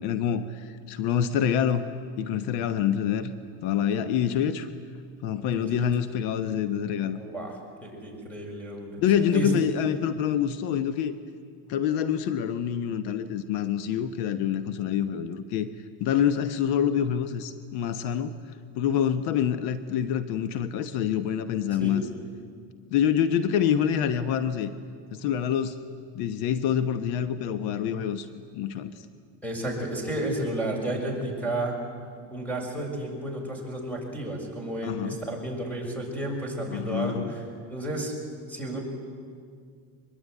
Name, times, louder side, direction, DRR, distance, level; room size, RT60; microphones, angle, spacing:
voice 1, 0.0-1.8 2.2-3.3 3.6-4.7 5.2-7.2 9.0-11.1 11.7-15.7 16.0-18.3 18.7-22.0 22.9-24.7 25.1-25.8 26.1-28.3 28.5-29.1 34.8-35.2 36.7-37.3, left 9 dB, 75° left, 10 dB, 1.3 m, -26 dB
voice 2, 5.5-5.9 7.1-7.5 7.8-9.0 9.3-9.5 21.8-22.0 29.4-31.8 32.3-37.4 37.7-38.1 38.5-38.8, right 1 dB, 5° left, 1 dB, 6.7 m, -32 dB
24.0 x 21.5 x 9.4 m, 2.1 s
cardioid pair, 130°, 40 cm